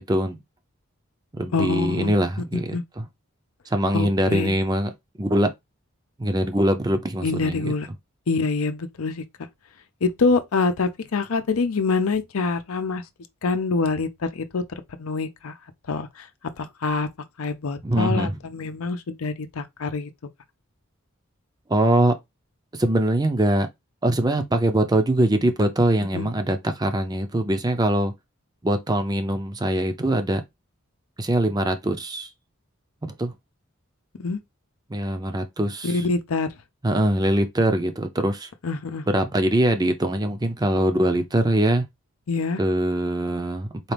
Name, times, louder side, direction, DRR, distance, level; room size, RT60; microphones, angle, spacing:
voice 1, 0.1-0.4 1.3-3.1 3.7-5.5 6.2-7.7 17.8-18.4 21.7-22.1 22.7-23.7 24.0-28.1 28.6-30.4 31.2-32.3 33.2-33.3 34.9-36.0 36.8-38.5 39.1-41.8 42.6-43.9, right 1 dB, 20° right, 0.5 m, -22 dB
voice 2, 1.5-2.1 2.5-2.8 3.9-4.5 7.2-7.9 8.3-9.2 10.0-13.0 13.4-14.6 15.0-15.5 15.9-16.3 16.6-17.1 17.4-20.1 26.1-26.3 34.2-34.4 35.8-36.5 38.6-39.0 42.3-42.6, left 4 dB, 85° left, 0.6 m, -25 dB
4.2 x 2.4 x 3.3 m
head